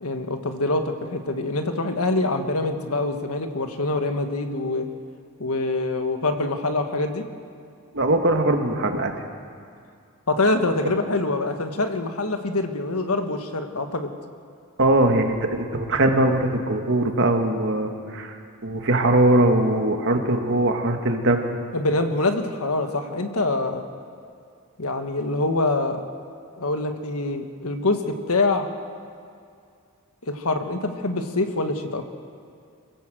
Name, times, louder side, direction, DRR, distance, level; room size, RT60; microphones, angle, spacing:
voice 1, 0.0-4.9 5.4-7.2 10.3-14.1 21.7-23.8 24.8-26.0 26.6-28.7 30.2-32.0, left 2 dB, 70° left, 6 dB, 1.6 m, -25 dB
voice 2, 7.9-9.1 14.8-18.4 18.6-21.6, right 1 dB, 55° right, 4 dB, 2.0 m, -21 dB
25.0 x 16.5 x 7.8 m, 2.4 s
head